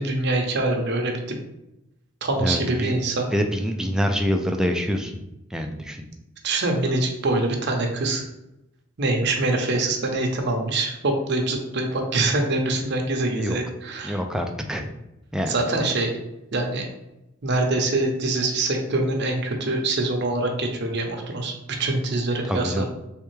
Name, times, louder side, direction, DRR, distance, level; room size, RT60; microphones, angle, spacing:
voice 1, 0.0-1.4 2.2-3.3 6.4-8.2 9.0-14.2 15.5-16.1 16.5-16.9 17.4-22.8, right 2 dB, 55° right, 2 dB, 0.7 m, -24 dB
voice 2, 2.4-2.9 3.3-5.1 5.5-6.1 13.4-13.6 14.0-14.9 15.3-15.5 22.4-22.9, equal, 5° right, 4 dB, 0.3 m, -25 dB
3.4 x 3.2 x 3.2 m, 0.91 s
head